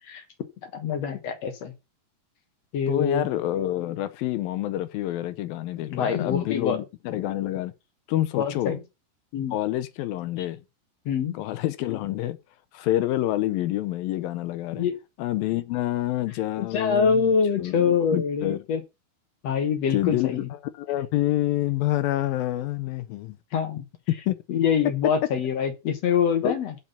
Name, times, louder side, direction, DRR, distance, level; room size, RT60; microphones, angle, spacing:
voice 1, 0.6-1.7 2.7-3.3 5.9-6.8 8.4-8.8 9.3-9.5 11.1-11.3 14.7-15.0 16.6-18.8 19.4-20.5 23.5-23.8 24.5-26.7, left 6 dB, 60° left, 2.0 m, -25 dB
voice 2, 2.9-7.7 8.1-8.8 9.5-10.6 11.3-12.4 12.7-14.9 15.2-17.3 17.6-18.6 19.9-20.4 20.7-23.4 24.1-24.3 26.4-26.5, left 14 dB, 80° left, 2.5 m, -27 dB
7.4 x 5.6 x 7.0 m
omnidirectional pair, 4.2 m